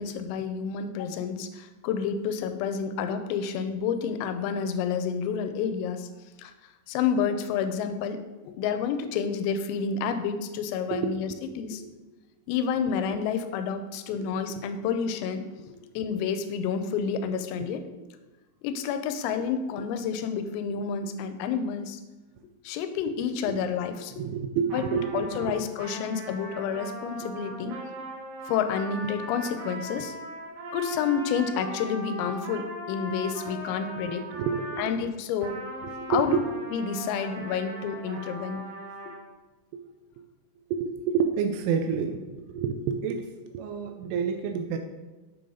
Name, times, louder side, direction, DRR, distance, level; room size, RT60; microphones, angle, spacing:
voice 1, 0.0-6.1 6.4-6.5 6.9-8.2 8.4-11.3 11.6-11.8 12.5-17.8 18.6-22.0 22.6-24.1 24.7-24.8 25.1-27.8 28.5-30.2 30.7-34.3 34.8-35.6 36.1-36.4 36.7-38.6, left 6 dB, 85° left, 9 dB, 3.3 m, -29 dB
voice 2, 10.9-11.9 14.2-14.3 24.1-25.5 34.0-34.9 35.9-36.4 39.7-39.8 40.7-44.8, right 6 dB, 85° right, 6 dB, 2.9 m, -29 dB
Trumpet, 24.7-34.9 35.4-39.2, right 1 dB, 70° right, 4.1 m, -39 dB
7.9 x 6.8 x 3.9 m, 1.2 s
omnidirectional pair, 5.9 m